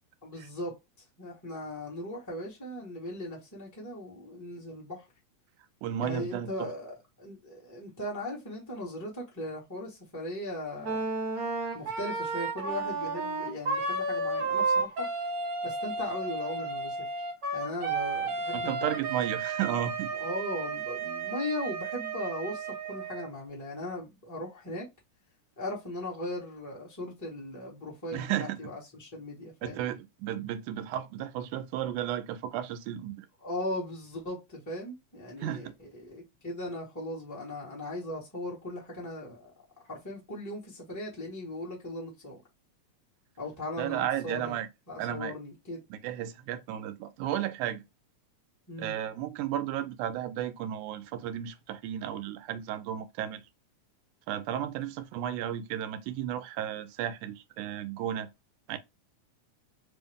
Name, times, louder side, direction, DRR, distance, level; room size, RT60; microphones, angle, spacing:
voice 1, 0.2-0.7 1.2-5.1 6.0-11.1 11.7-15.1 15.6-17.1 17.5-18.9 20.1-24.9 25.6-29.8 33.4-39.5 39.9-42.4 43.4-45.8 48.7-48.9, left 1 dB, 20° left, 0.4 m, -38 dB
voice 2, 5.8-6.7 18.5-20.1 28.1-28.6 29.6-33.3 35.4-35.7 43.8-44.7 45.0-45.3 45.9-47.8 48.8-53.4 54.3-58.3 58.7-58.8, right 11 dB, 90° right, 2.0 m, -33 dB
Wind instrument woodwind instrument, 10.8-23.3, right 3 dB, 50° right, 1.1 m, -32 dB
4.7 x 2.0 x 3.4 m
omnidirectional pair, 3.4 m